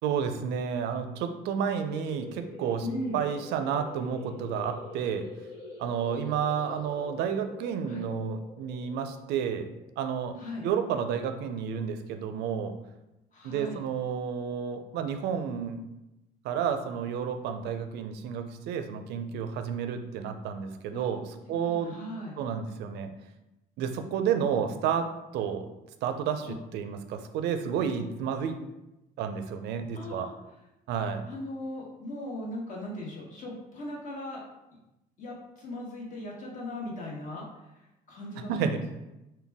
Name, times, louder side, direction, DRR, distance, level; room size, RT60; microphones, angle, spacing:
voice 1, 0.0-2.9 3.1-5.2 5.8-9.7 10.0-10.4 10.6-12.7 13.4-15.8 16.4-22.0 22.4-23.1 23.8-25.1 25.3-25.7 26.0-28.6 29.2-30.3 30.9-31.2 38.5-38.8, right 7 dB, 80° right, 7 dB, 0.4 m, -31 dB
sound 1, 1.8-11.1, left 2 dB, 85° left, 1.2 m, -45 dB
voice 2, 2.8-3.2 7.8-8.0 10.3-10.6 13.3-13.8 20.9-21.1 21.6-22.3 26.5-26.6 29.9-30.3 31.3-34.4 35.2-37.7 38.1-38.9, left 1 dB, 50° left, -3 dB, 1.2 m, -38 dB
3.9 x 2.2 x 3.4 m, 0.95 s
cardioid pair, 110°, 17 cm